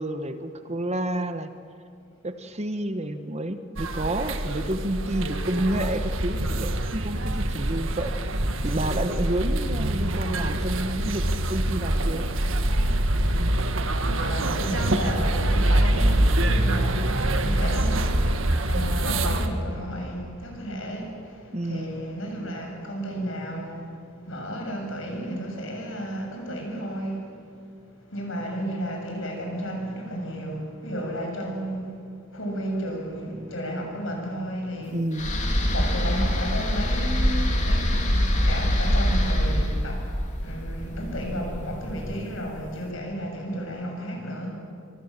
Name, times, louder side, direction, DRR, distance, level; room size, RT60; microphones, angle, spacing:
voice 1, 0.0-1.5 2.2-8.1 8.6-12.3 21.5-21.9 34.9-35.3, right 1 dB, 30° right, 9 dB, 1.2 m, -29 dB
sound 1, 3.8-19.5, right 1 dB, 65° right, 1.8 m, -25 dB
voice 2, 14.2-23.9 24.2-27.3 28.1-32.0 32.3-35.0 35.7-40.1 40.4-44.5, equal, 65° left, 1 dB, 7.5 m, -33 dB
sound 2, 35.1-42.3, equal, 35° left, 3.3 m, -24 dB
26.0 x 25.0 x 7.5 m, 2.5 s
head